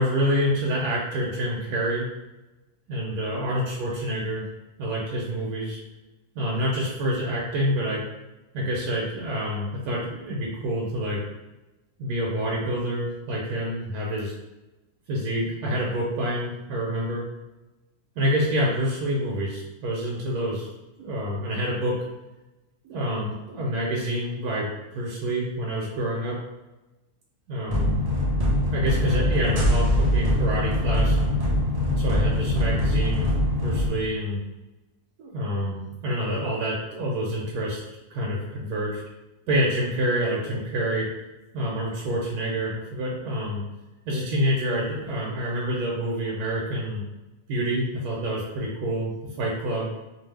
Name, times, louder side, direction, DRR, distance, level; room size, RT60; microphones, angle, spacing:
voice 1, 0.0-2.1 2.9-4.4 4.8-5.8 6.3-8.0 8.5-11.2 12.0-14.3 15.1-17.3 18.2-20.7 21.0-22.0 22.8-26.4 27.5-28.0 28.7-31.2 31.9-33.3 33.5-34.4 35.2-39.0 39.5-41.1 41.5-43.6 44.1-47.0 47.5-49.9, equal, 85° right, -3 dB, 1.2 m, -27 dB
sound 1, 27.7-33.9, left 1 dB, 45° right, 0.4 m, -23 dB
2.7 x 2.4 x 3.3 m, 1.0 s
omnidirectional pair, 1.6 m